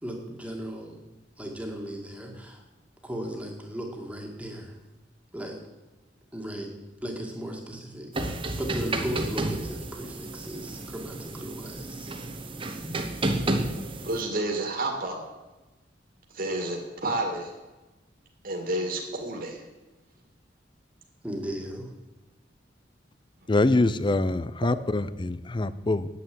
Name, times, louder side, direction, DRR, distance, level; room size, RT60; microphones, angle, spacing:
voice 1, 0.0-1.0 1.4-2.6 3.0-4.7 5.3-5.6 6.3-6.7 7.0-8.1 8.6-12.1 21.2-21.9, equal, 5° right, 1 dB, 2.0 m, -36 dB
sound 1, 8.1-14.2, right 2 dB, 30° right, 1.2 m, -31 dB
voice 2, 14.0-15.2 16.3-17.5 18.4-19.6, right 2 dB, 50° right, 1 dB, 2.2 m, -30 dB
voice 3, 23.5-26.1, left 2 dB, 25° left, 15 dB, 0.5 m, -24 dB
9.5 x 8.9 x 8.5 m, 1.2 s
head